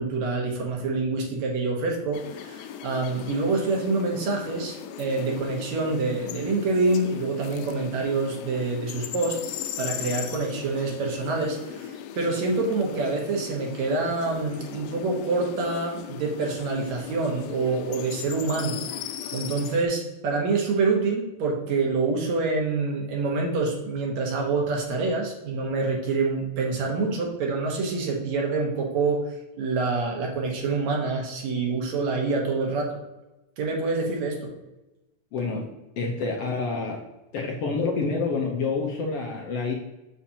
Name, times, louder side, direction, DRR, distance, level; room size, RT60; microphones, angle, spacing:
voice 1, 0.0-9.4 9.8-18.8 19.3-29.3 29.6-33.0 33.6-34.5, right 3 dB, 70° right, 0 dB, 2.4 m, -26 dB
sound 1, 2.1-19.9, left 10 dB, 90° left, 2.0 m, -38 dB
voice 2, 35.3-35.7 36.0-37.0 37.3-39.7, left 4 dB, 70° left, 0 dB, 1.6 m, -27 dB
7.2 x 7.0 x 2.8 m, 1.0 s
omnidirectional pair, 3.4 m